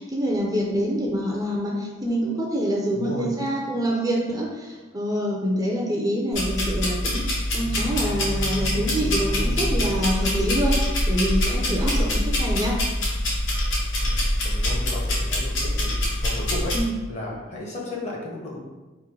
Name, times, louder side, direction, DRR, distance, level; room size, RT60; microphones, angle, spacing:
voice 1, 0.0-7.2 7.5-10.8 11.1-12.8 16.7-16.9, equal, 20° right, -2 dB, 0.5 m, -26 dB
voice 2, 2.9-3.6 11.9-12.1 14.0-15.9 16.2-16.7 17.1-18.6, left 2 dB, 35° left, -3 dB, 0.9 m, -34 dB
sound 1, 6.3-16.8, left 1 dB, 70° left, 1.2 m, -24 dB
sound 2, 7.5-11.6, right 1 dB, 85° right, 0.5 m, -40 dB
3.7 x 2.6 x 4.6 m, 1.2 s
head